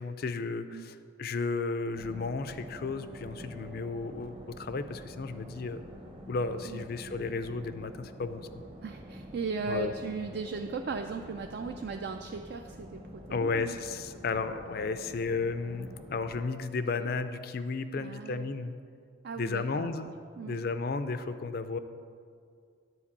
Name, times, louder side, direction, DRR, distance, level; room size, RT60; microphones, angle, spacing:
voice 1, 0.0-5.8 6.3-8.6 9.7-9.9 13.3-18.7 19.4-20.1 20.5-21.8, left 4 dB, 50° left, 11 dB, 0.4 m, -33 dB
sound 1, 1.9-16.4, equal, 30° right, 0.8 m, -47 dB
voice 2, 8.8-13.0 13.3-13.8 17.0-17.1 18.0-18.5 19.2-20.6, right 4 dB, 55° right, 5 dB, 0.4 m, -37 dB
9.9 x 4.5 x 7.3 m, 2.2 s
head